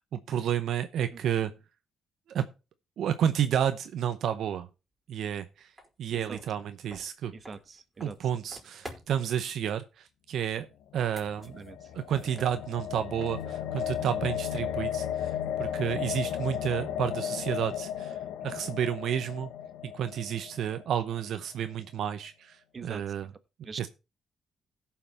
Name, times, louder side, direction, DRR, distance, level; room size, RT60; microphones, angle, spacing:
voice 1, 0.1-1.5 2.3-2.5 3.0-4.7 5.1-5.7 6.0-7.3 8.0-10.7 10.9-11.6 11.9-18.2 18.4-19.5 19.8-23.3 23.8-23.9, right 9 dB, 70° right, 0.7 m, -31 dB
sound 1, 5.8-5.9 6.3-9.3 10.9-12.9 13.2-16.3, right 1 dB, 15° right, 3.8 m, -50 dB
voice 2, 7.3-8.2 11.6-11.9 22.7-23.0 23.6-23.9, right 5 dB, 40° right, 1.2 m, -43 dB
sound 2, 11.2-21.2, left 10 dB, 90° left, 0.7 m, -35 dB
16.0 x 5.7 x 4.1 m
cardioid pair, 90°, 0 cm